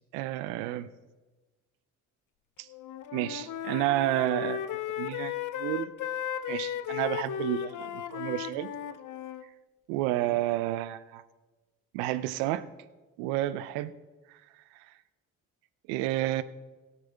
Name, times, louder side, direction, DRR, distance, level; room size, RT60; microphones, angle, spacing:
voice 1, 0.1-0.9 2.6-2.7 3.1-4.6 5.0-5.9 6.5-8.7 9.9-11.2 11.9-12.6 13.2-13.9 14.3-14.4 15.9-16.4, right 15 dB, 85° right, 15 dB, 0.6 m, -30 dB
Wind instrument woodwind instrument, 2.7-9.4, left 10 dB, 55° left, 0.7 m, -35 dB
17.0 x 8.9 x 3.4 m, 1.2 s
hypercardioid pair, 45°, 36 cm